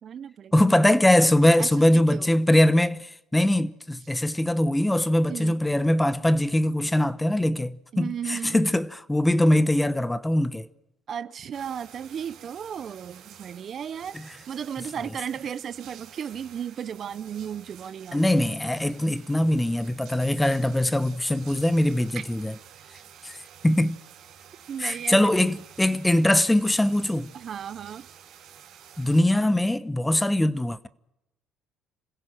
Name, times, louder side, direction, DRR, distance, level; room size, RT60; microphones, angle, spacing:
voice 1, 0.0-0.5 1.6-2.4 5.3-5.6 7.9-8.7 11.1-14.2 14.5-18.3 22.1-22.2 24.7-25.5 27.3-28.1, right 8 dB, 50° right, 0.7 m, -35 dB
voice 2, 0.5-10.7 18.1-22.5 23.2-23.4 23.6-24.0 24.8-27.3 29.0-30.9, left 1 dB, 10° left, 1.0 m, -22 dB
sound 1, 11.5-29.2, right 9 dB, 70° right, 4.5 m, -50 dB
26.5 x 16.5 x 7.7 m
supercardioid pair, 80°, 0 cm